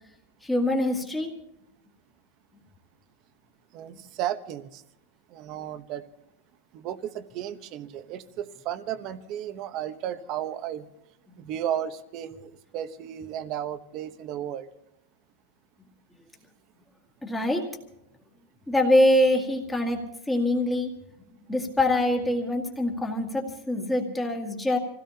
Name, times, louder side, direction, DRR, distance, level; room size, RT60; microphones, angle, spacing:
voice 1, 0.4-1.3 17.2-17.6 18.7-20.0 20.3-20.9 21.5-24.8, left 1 dB, 5° left, 1 dB, 2.0 m, -24 dB
voice 2, 3.7-4.8 5.3-6.0 6.7-10.9 11.4-14.7, right 10 dB, 30° right, 11 dB, 1.0 m, -34 dB
27.5 x 17.0 x 2.9 m, 0.85 s
supercardioid pair, 175°, 0 cm